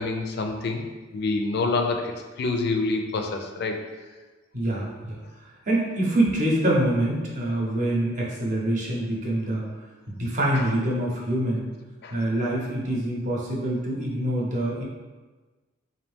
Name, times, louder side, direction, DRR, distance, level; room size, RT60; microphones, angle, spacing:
voice 1, 0.0-3.8 10.5-10.6 12.0-12.1, left 3 dB, 55° left, 4 dB, 0.4 m, -27 dB
voice 2, 4.5-5.2 5.7-9.7 10.1-11.7 12.1-14.8, right 1 dB, 40° right, -3 dB, 0.8 m, -25 dB
3.9 x 2.7 x 3.5 m, 1.3 s
head